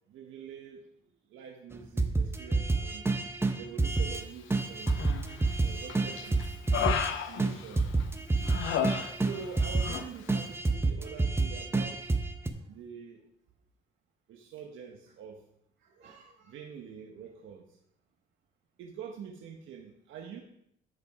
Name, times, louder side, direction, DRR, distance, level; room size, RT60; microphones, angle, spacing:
voice 1, 0.1-0.8 1.3-3.1 3.5-4.9 5.6-6.6 7.2-7.9 9.2-12.1 12.7-13.2 14.3-15.4 16.5-17.7 18.8-20.4, right 7 dB, 80° right, 0 dB, 1.1 m, -45 dB
sound 1, 2.0-4.2 4.5-7.1 7.4-7.5 7.8-10.0 10.3-12.5, right 3 dB, 10° right, 0.8 m, -29 dB
Human voice, 4.9-5.5 5.9-8.0 8.5-9.5 9.8-10.1, left 8 dB, 85° left, 0.8 m, -33 dB
voice 2, 6.4-7.0 7.9-8.7 12.5-12.6 15.8-16.5, right 5 dB, 65° right, -4 dB, 1.6 m, -57 dB
9.7 x 5.2 x 4.8 m, 0.75 s
cardioid pair, 90°, 20 cm